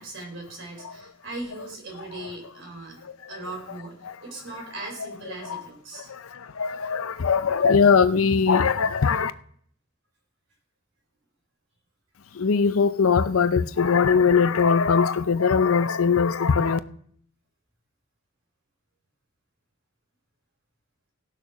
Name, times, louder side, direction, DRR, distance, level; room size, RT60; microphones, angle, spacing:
voice 1, 0.0-3.0 3.3-6.1, right 2 dB, 60° right, 4.2 m, -39 dB
voice 2, 6.1-9.3 12.3-16.8, left 5 dB, 70° left, 0.6 m, -21 dB
16.5 x 6.7 x 6.1 m
head